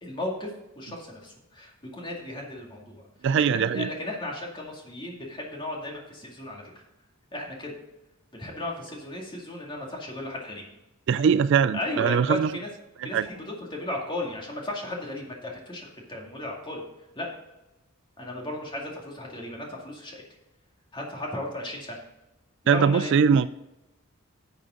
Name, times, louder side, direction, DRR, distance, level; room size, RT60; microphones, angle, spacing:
voice 1, 0.0-3.1 3.4-6.8 7.3-7.8 8.3-10.7 11.7-12.7 13.0-13.4 13.7-16.8 17.2-17.3 18.2-20.2 20.9-22.0 22.6-23.1, left 1 dB, 20° left, -1 dB, 2.3 m, -35 dB
voice 2, 3.2-3.9 11.1-12.5 13.1-13.3 22.7-23.5, right 6 dB, 55° right, 15 dB, 0.3 m, -21 dB
11.0 x 6.9 x 3.7 m, 0.99 s
head